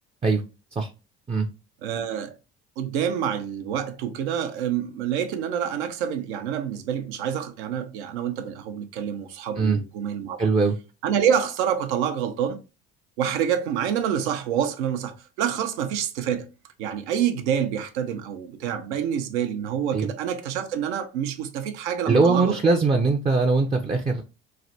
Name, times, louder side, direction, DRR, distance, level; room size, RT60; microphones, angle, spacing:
voice 1, 1.8-2.4 2.8-10.5 11.0-12.6 13.2-16.5 16.8-22.6, right 8 dB, 80° right, 0.6 m, -27 dB
voice 2, 10.4-10.8 19.9-20.1 22.1-24.2, right 4 dB, 20° right, 0.4 m, -21 dB
3.2 x 2.1 x 2.7 m
hypercardioid pair, 65°, 33 cm